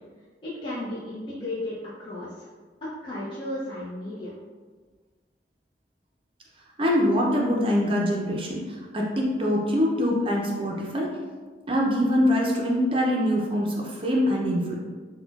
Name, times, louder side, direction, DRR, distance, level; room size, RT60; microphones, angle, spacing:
voice 1, 0.4-2.5 3.0-4.3, left 1 dB, 25° left, -9 dB, 0.6 m, -34 dB
voice 2, 6.8-11.1 11.7-14.8, equal, 30° right, -2 dB, 0.6 m, -24 dB
4.0 x 2.2 x 4.0 m, 1.5 s
head